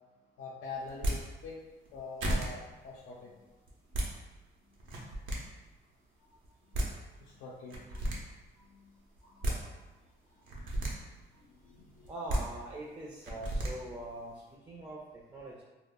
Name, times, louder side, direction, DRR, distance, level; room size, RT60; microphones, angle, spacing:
voice 1, 0.4-1.6 1.9-3.4 4.6-4.7 6.2-6.3 6.6-6.9 7.2-8.3 8.5-9.0 9.2-9.8 10.3-10.9 11.3-12.1, left 3 dB, 90° left, -4 dB, 0.4 m, -46 dB
sound 1, 0.9-1.2 1.8-1.9 2.2-2.5 3.7-4.1 4.8-5.4 6.4-6.5 6.7-6.9 7.7-8.2 9.2-9.6 10.4-10.9 12.0-12.4 13.2-13.7, right 1 dB, 75° right, 0.6 m, -32 dB
voice 2, 12.1-15.6, right 1 dB, 20° right, -3 dB, 0.4 m, -43 dB
2.0 x 2.0 x 3.5 m, 1.2 s
cardioid pair, 90°, 20 cm